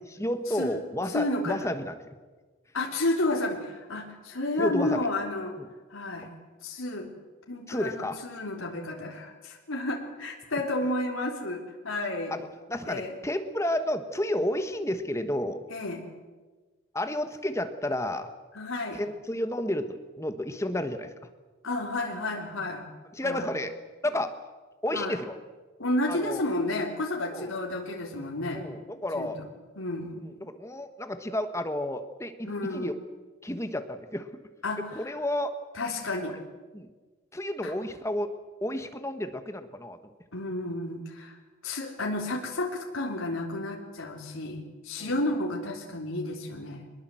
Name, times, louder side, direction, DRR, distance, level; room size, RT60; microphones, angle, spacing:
voice 1, 0.1-2.2 4.6-5.1 5.6-5.7 7.7-8.2 12.3-15.6 16.9-18.3 19.0-21.1 23.1-23.7 24.0-24.3 24.8-25.4 26.1-26.4 27.3-27.5 28.5-29.4 30.2-32.9 33.4-34.3 34.9-35.5 36.7-36.9 37.3-38.3 38.6-40.0 45.0-45.2, left 1 dB, 15° left, 8 dB, 1.3 m, -31 dB
voice 2, 1.1-1.7 2.7-5.5 5.9-6.3 6.6-7.1 7.5-12.3 12.9-13.1 15.7-16.1 18.5-19.0 21.6-22.9 23.2-23.5 24.9-25.2 25.8-28.7 29.1-29.3 29.8-30.2 32.4-32.9 34.6-35.1 35.8-36.4 37.6-37.7 40.3-41.4 41.6-46.8, left 2 dB, 80° left, 0 dB, 3.6 m, -31 dB
24.0 x 21.0 x 7.8 m, 1.3 s
head